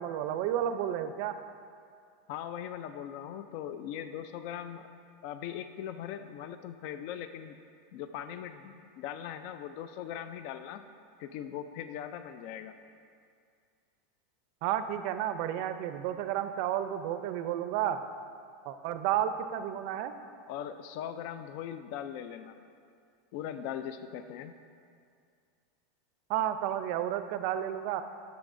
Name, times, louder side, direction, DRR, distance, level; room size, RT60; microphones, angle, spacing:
voice 1, 0.0-1.4 14.6-18.0 18.7-20.1 26.3-28.0, right 11 dB, 55° right, 10 dB, 0.4 m, -31 dB
voice 2, 2.3-4.9 5.2-7.6 7.9-10.8 11.2-12.8 20.5-22.6 23.3-24.6, left 9 dB, 55° left, 10 dB, 0.4 m, -40 dB
12.0 x 6.8 x 2.6 m, 2.3 s
supercardioid pair, 140°, 0 cm